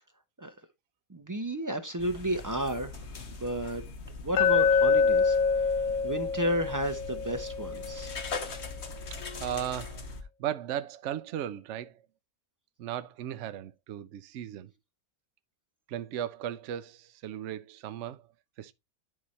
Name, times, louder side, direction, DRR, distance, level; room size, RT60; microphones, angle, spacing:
voice 1, 1.1-3.0 3.3-3.8 4.2-5.4 6.0-8.2, right 1 dB, 30° right, 0.3 m, -32 dB
sound 1, 2.0-10.2, left 4 dB, 50° left, 1.3 m, -41 dB
Glass, 4.4-8.5, left 5 dB, 85° left, 1.1 m, -26 dB
voice 2, 9.1-10.1 10.4-12.0 12.8-14.7 15.9-18.2 18.6-18.7, right 10 dB, 65° right, 0.8 m, -36 dB
11.0 x 4.2 x 3.2 m
omnidirectional pair, 1.5 m